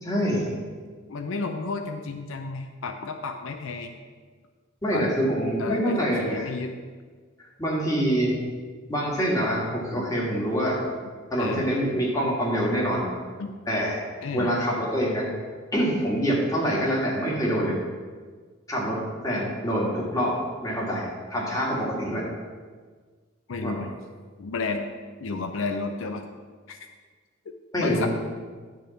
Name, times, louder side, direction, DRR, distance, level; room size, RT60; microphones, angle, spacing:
voice 1, 0.0-0.5 4.8-6.5 7.6-8.4 8.9-10.8 11.3-13.1 13.7-14.1 14.3-15.3 15.7-17.8 18.7-20.4 20.6-22.3 23.6-23.7 27.7-28.1, equal, 20° left, -4 dB, 1.9 m, -25 dB
voice 2, 1.1-3.9 4.9-5.1 5.6-6.8 11.4-11.6 13.4-13.5 14.2-14.5 23.5-24.0 24.4-24.9 25.2-26.3 26.7-26.8 27.8-28.1, left 4 dB, 75° left, 6 dB, 0.5 m, -32 dB
10.0 x 3.5 x 7.1 m, 1.5 s
head